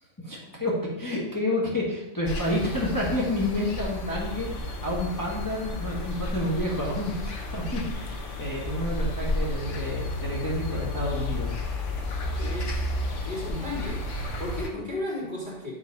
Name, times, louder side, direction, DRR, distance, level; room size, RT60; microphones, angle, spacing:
voice 1, 0.2-11.5 14.7-14.9, left 1 dB, 15° left, -5 dB, 1.6 m, -29 dB
sound 1, 2.2-14.7, left 2 dB, 80° left, 1.5 m, -32 dB
voice 2, 12.4-12.9 13.2-15.7, left 1 dB, 40° right, -3 dB, 2.5 m, -34 dB
9.5 x 4.0 x 5.4 m, 0.92 s
omnidirectional pair, 1.2 m